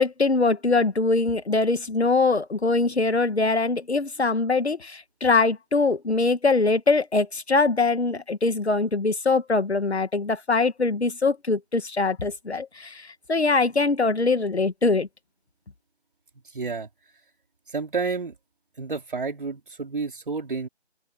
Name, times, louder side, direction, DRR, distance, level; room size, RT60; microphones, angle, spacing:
voice 1, 0.0-15.1, left 3 dB, 70° left, 2.0 m, -23 dB
voice 2, 16.5-16.9 17.7-18.4 18.8-20.7, right 4 dB, 50° right, 4.0 m, -30 dB
open air
figure-of-eight pair, 165°, 34 cm